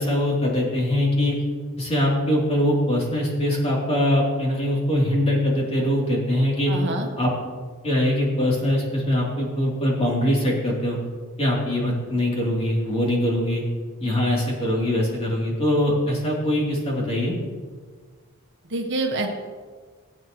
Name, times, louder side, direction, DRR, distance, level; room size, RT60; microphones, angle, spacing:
voice 1, 0.0-1.4 1.8-6.7 7.2-7.3 7.8-11.0 11.4-13.6 14.0-17.3, left 1 dB, 30° left, -3 dB, 3.1 m, -22 dB
voice 2, 6.7-7.1 18.6-19.3, right 2 dB, 55° right, 2 dB, 1.5 m, -26 dB
20.5 x 8.5 x 3.1 m, 1.5 s
head